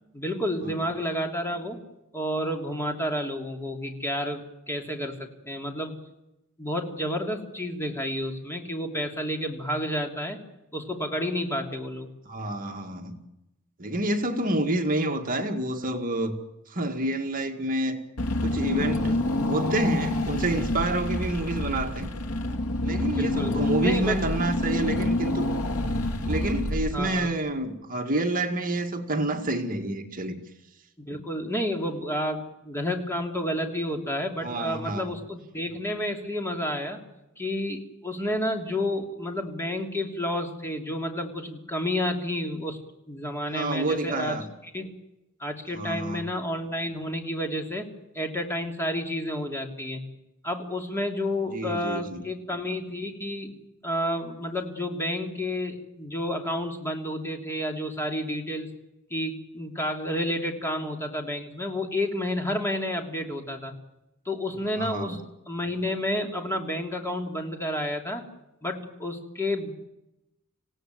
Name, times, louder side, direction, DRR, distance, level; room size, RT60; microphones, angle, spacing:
voice 1, 0.1-1.8 2.1-5.9 6.6-10.4 10.7-12.1 23.1-23.5 23.8-24.2 26.9-27.3 31.0-37.0 37.4-42.8 43.1-44.4 44.7-44.9 45.4-47.9 48.1-50.0 50.4-58.7 59.1-63.7 64.2-65.2 65.5-68.2 68.6-69.7, left 1 dB, 10° left, 3 dB, 3.0 m, -30 dB
voice 2, 12.3-13.2 13.8-16.4 16.7-18.0 18.4-22.1 22.8-25.6 26.3-30.4 34.4-35.2 43.5-44.5 45.7-46.2 51.5-52.2 64.7-65.2, right 1 dB, 40° right, 4 dB, 2.1 m, -28 dB
Car / Engine, 18.2-27.3, left 1 dB, 80° left, 1.9 m, -27 dB
26.5 x 17.0 x 9.2 m, 0.93 s
head